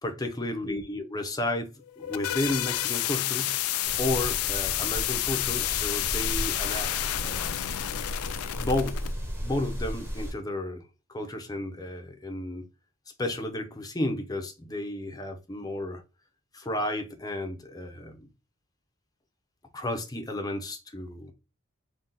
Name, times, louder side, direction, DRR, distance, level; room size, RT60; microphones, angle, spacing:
voice 1, 0.0-3.5 4.0-6.9 7.2-7.6 8.6-9.0 9.4-10.8 11.1-12.7 13.2-16.0 16.5-18.3 19.7-21.3, left 1 dB, 20° left, 0.6 m, -32 dB
sound 1, 1.8-9.1, left 13 dB, 90° left, 0.3 m, -30 dB
sound 2, 3.8-10.3, equal, 10° right, 1.0 m, -35 dB
3.8 x 2.3 x 4.0 m
head